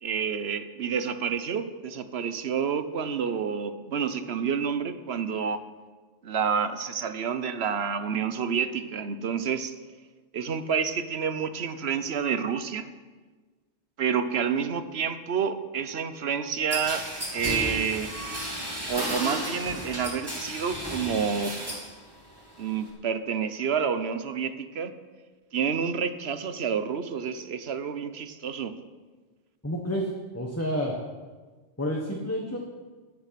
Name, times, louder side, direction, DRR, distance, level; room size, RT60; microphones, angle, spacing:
voice 1, 0.0-5.6 6.2-9.7 10.3-12.9 14.0-17.1 17.3-18.1 18.9-21.6 22.6-24.9 25.5-28.7, right 6 dB, 65° right, 11 dB, 1.1 m, -29 dB
sound 1, 16.7-21.9 22.3-22.9, equal, 20° right, 3.0 m, -33 dB
voice 2, 29.6-30.9 31.8-32.6, equal, 15° left, -1 dB, 1.3 m, -29 dB
15.0 x 10.5 x 5.9 m, 1.4 s
omnidirectional pair, 1.2 m